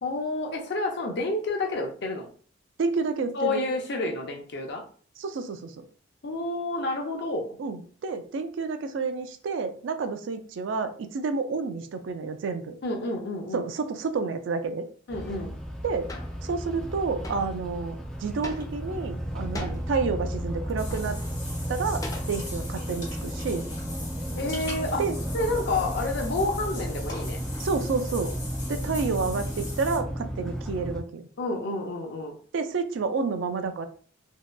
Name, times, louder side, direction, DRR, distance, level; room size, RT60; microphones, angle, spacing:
voice 1, 0.0-2.3 3.3-4.9 6.2-7.6 12.8-13.7 15.1-15.5 24.3-25.1 25.3-27.4 31.4-32.4, left 2 dB, 65° left, 2 dB, 0.6 m, -29 dB
voice 2, 2.8-3.6 5.2-5.8 7.6-12.8 13.5-14.9 15.8-16.1 16.4-21.2 21.7-22.0 22.3-23.6 25.0-25.2 27.6-28.3 28.7-31.2 32.5-33.9, right 4 dB, 80° right, 8 dB, 0.4 m, -29 dB
sound 1, 15.1-31.0, equal, 5° left, 1.0 m, -33 dB
sound 2, 16.1-16.4 17.2-17.5 18.4-18.9 19.5-19.9 20.7-21.3 22.0-22.7, left 1 dB, 20° left, 0.4 m, -38 dB
Water / Bathtub (filling or washing), 20.8-30.0, left 2 dB, 40° left, 1.4 m, -41 dB
2.7 x 2.1 x 2.2 m, 0.42 s
head